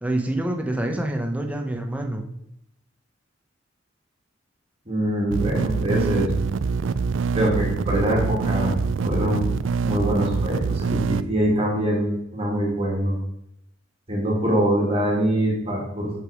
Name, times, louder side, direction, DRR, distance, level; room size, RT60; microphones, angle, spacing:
voice 1, 0.0-2.3, right 1 dB, 10° right, 4 dB, 0.9 m, -26 dB
voice 2, 4.9-6.3 7.3-8.7 9.0-9.5 9.8-13.1 14.1-16.1, right 1 dB, 30° right, -4 dB, 2.4 m, -23 dB
sound 1, 5.3-11.2, right 5 dB, 70° right, 0.4 m, -25 dB
6.4 x 6.2 x 4.9 m, 0.80 s
head